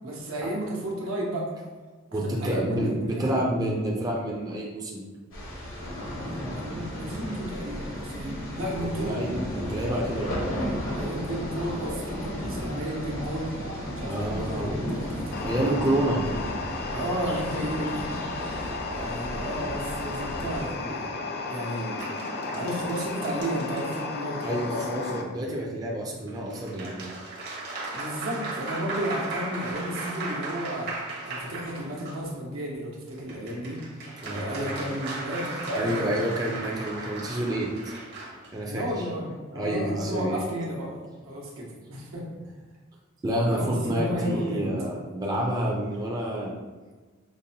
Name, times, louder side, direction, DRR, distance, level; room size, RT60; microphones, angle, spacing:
voice 1, 0.0-1.5 2.1-3.4 6.1-9.2 10.9-13.5 13.9-16.0 16.9-21.1 21.5-22.0 22.5-24.7 27.9-30.9 31.2-33.8 34.2-36.3 38.7-42.3 43.4-44.7, right 1 dB, 85° right, -3 dB, 1.0 m, -33 dB
voice 2, 2.1-5.0 8.8-10.3 14.0-14.7 15.4-16.2 24.4-27.1 34.2-34.8 35.7-37.9 38.5-38.8 39.5-40.4 43.2-46.5, right 1 dB, 20° right, -3 dB, 0.4 m, -28 dB
sound 1, 5.3-20.6, equal, 75° left, 1.1 m, -34 dB
sound 2, 15.3-25.2, left 3 dB, 50° left, 0.4 m, -34 dB
sound 3, 22.0-24.4 26.3-32.3 33.1-38.5, right 2 dB, 50° right, 0.8 m, -37 dB
5.1 x 2.1 x 2.8 m, 1.3 s
head